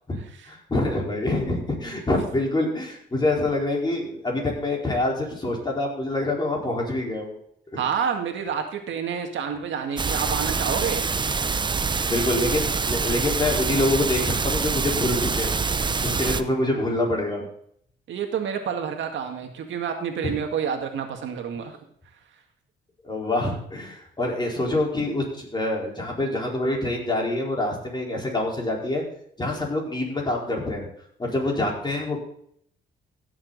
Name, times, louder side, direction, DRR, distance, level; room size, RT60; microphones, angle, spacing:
voice 1, 0.4-7.3 7.7-7.9 12.1-15.6 16.0-17.5 20.2-20.4 23.0-29.0 29.4-30.9 31.2-32.2, left 2 dB, 20° left, -1 dB, 4.4 m, -26 dB
voice 2, 7.8-11.0 18.1-21.7, right 7 dB, 70° right, 4 dB, 2.0 m, -28 dB
sound 1, 10.0-16.4, right 4 dB, 25° right, 0.6 m, -25 dB
16.5 x 7.5 x 4.0 m, 0.66 s
cardioid pair, 90°, 20 cm